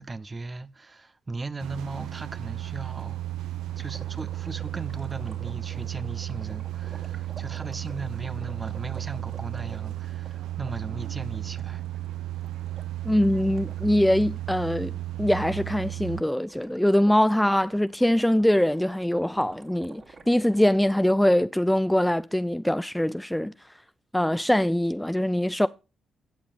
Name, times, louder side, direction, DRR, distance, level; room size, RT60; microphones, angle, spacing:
voice 1, 0.0-3.2 3.8-11.8, right 3 dB, 30° right, 0.8 m, -37 dB
sound 1, 1.6-16.2, right 14 dB, 80° right, 0.7 m, -34 dB
sound 2, 3.7-14.6 16.5-20.9, right 4 dB, 55° right, 2.8 m, -51 dB
voice 2, 13.0-23.5 24.1-25.7, left 1 dB, 5° left, 0.4 m, -23 dB
16.5 x 6.9 x 2.5 m
hypercardioid pair, 50°, 0 cm